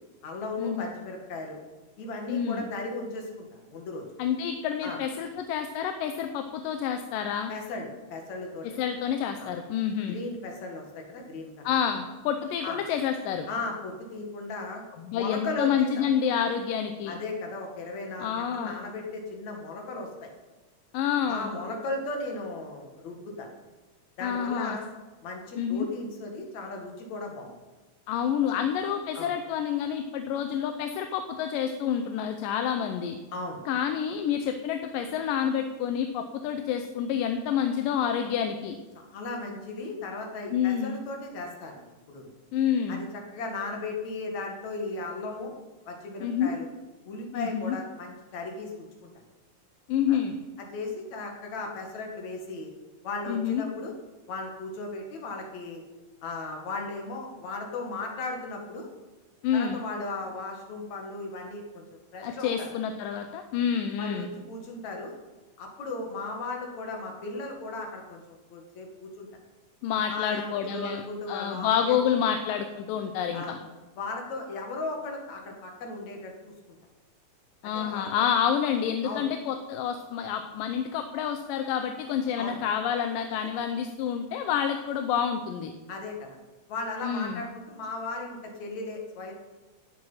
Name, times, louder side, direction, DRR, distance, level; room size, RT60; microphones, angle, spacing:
voice 1, 0.2-1.6 2.0-4.0 4.8-5.0 7.5-8.8 9.4-9.5 10.1-11.7 12.6-12.8 13.5-14.8 15.1-16.0 17.1-20.3 21.3-23.5 24.2-24.9 25.2-27.5 28.5-28.6 29.1-29.3 33.3-33.6 38.9-42.3 42.9-45.5 45.9-46.7 47.0-49.1 50.1-50.2 50.7-52.7 53.0-53.9 54.3-55.8 56.2-58.9 59.5-62.7 64.0-65.1 65.6-69.3 70.1-72.0 73.3-73.6 74.0-76.5 77.6-78.1 79.0-79.3 82.4-82.6 85.9-86.4 86.7-89.3, left 2 dB, 60° left, 2 dB, 3.2 m, -36 dB
voice 2, 2.3-2.7 4.2-7.5 8.8-10.2 11.6-13.5 15.0-17.2 18.2-18.7 20.9-21.5 24.2-24.8 25.6-25.9 28.1-33.2 33.7-38.8 40.5-41.0 42.5-43.0 46.2-46.5 47.3-47.8 49.9-50.4 53.3-53.6 59.4-59.8 62.2-64.3 69.8-71.0 71.3-73.6 77.6-85.7 87.0-87.4, left 8 dB, 85° left, 6 dB, 2.5 m, -28 dB
18.0 x 7.7 x 5.7 m, 1.2 s
omnidirectional pair, 3.8 m